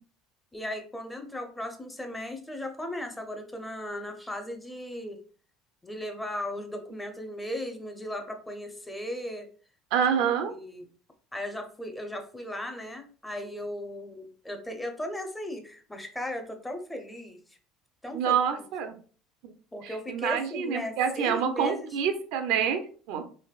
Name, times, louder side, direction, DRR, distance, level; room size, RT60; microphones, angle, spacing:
voice 1, 0.5-5.2 5.8-9.5 10.2-10.9 11.3-17.4 18.0-18.4 19.7-22.0, left 1 dB, 10° left, 5 dB, 0.6 m, -36 dB
voice 2, 9.9-10.5 18.1-18.9 19.4-19.5 19.8-23.3, right 7 dB, 75° right, 7 dB, 0.5 m, -27 dB
3.3 x 2.6 x 2.3 m, 0.41 s
supercardioid pair, 110°, 0 cm